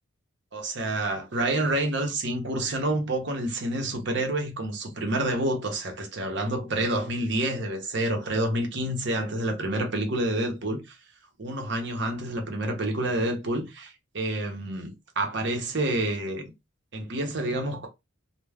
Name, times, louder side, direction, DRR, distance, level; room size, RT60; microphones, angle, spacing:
voice 1, 0.5-10.8 11.4-16.5 16.9-17.9, right 1 dB, 60° right, 0.8 m, -28 dB
2.3 x 2.1 x 3.2 m
head